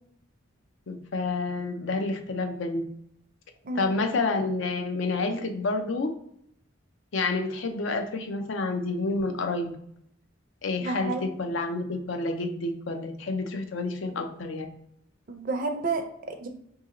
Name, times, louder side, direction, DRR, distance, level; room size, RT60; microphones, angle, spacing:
voice 1, 0.9-2.8 3.7-6.1 7.1-9.8 10.6-14.7, left 3 dB, 75° left, 6 dB, 0.5 m, -29 dB
voice 2, 10.8-11.3 15.3-16.5, right 3 dB, 45° right, 4 dB, 0.5 m, -31 dB
2.8 x 2.7 x 3.6 m, 0.72 s
head